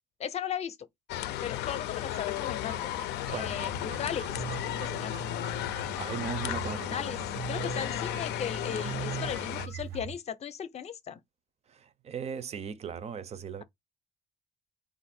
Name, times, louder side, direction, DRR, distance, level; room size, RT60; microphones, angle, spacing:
voice 1, 0.2-0.8 1.4-2.9 3.3-4.4 4.7-5.3 6.5-6.6 6.9-7.2 7.5-11.2, left 8 dB, 40° left, 0.6 m, -37 dB
sound 1, 1.1-9.7, left 13 dB, 85° left, 0.5 m, -34 dB
sound 2, 1.9-10.1, right 7 dB, 75° right, 0.8 m, -51 dB
sound 3, 3.3-10.1, right 4 dB, 90° right, 1.0 m, -40 dB
voice 2, 6.0-7.1 11.7-13.6, right 7 dB, 40° right, 0.5 m, -38 dB
4.1 x 2.6 x 4.1 m
cardioid pair, 110°, 17 cm